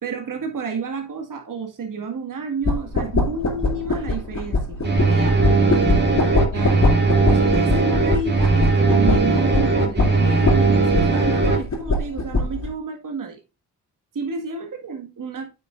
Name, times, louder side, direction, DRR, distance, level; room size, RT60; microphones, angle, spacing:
voice 1, 0.0-4.8 5.0-5.4 6.5-6.9 7.3-13.4 14.1-15.5, right 4 dB, 50° right, 1.8 m, -30 dB
sound 1, 2.6-12.7, left 3 dB, 40° left, 2.6 m, -23 dB
sound 2, 4.8-11.6, right 3 dB, 25° right, 2.5 m, -19 dB
8.7 x 6.3 x 2.5 m
hypercardioid pair, 45°, 40 cm